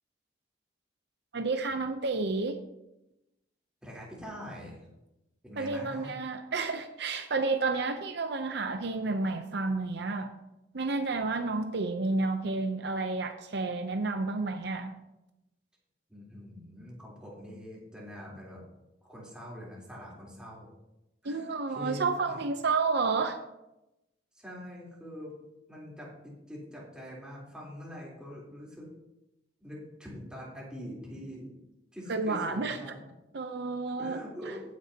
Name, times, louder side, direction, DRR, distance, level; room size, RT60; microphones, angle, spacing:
voice 1, 1.3-2.6 5.6-10.3 10.7-14.9 21.2-23.4 32.1-32.8 33.3-34.2, right 3 dB, 60° right, 7 dB, 0.7 m, -30 dB
voice 2, 3.8-4.9 5.4-6.1 16.1-18.6 19.0-20.7 21.2-22.5 24.3-25.3 25.7-28.9 29.6-31.5 31.9-33.1 34.0-34.6, equal, 5° right, -5 dB, 3.6 m, -44 dB
15.5 x 9.5 x 2.9 m, 0.92 s
head